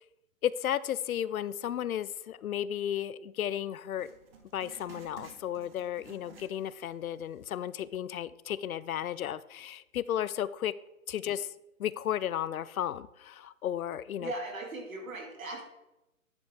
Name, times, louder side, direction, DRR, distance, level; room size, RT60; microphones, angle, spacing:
voice 1, 0.4-4.1 4.5-10.7 11.1-11.5 11.8-14.3, left 10 dB, 80° left, 18 dB, 0.5 m, -34 dB
Writing, 3.9-7.0 7.3-7.4 8.1-8.2, right 5 dB, 45° right, 1.3 m, -53 dB
voice 2, 14.2-15.6, right 2 dB, 70° right, 1 dB, 2.5 m, -38 dB
10.0 x 5.4 x 3.7 m, 0.94 s
hypercardioid pair, 160°, 42 cm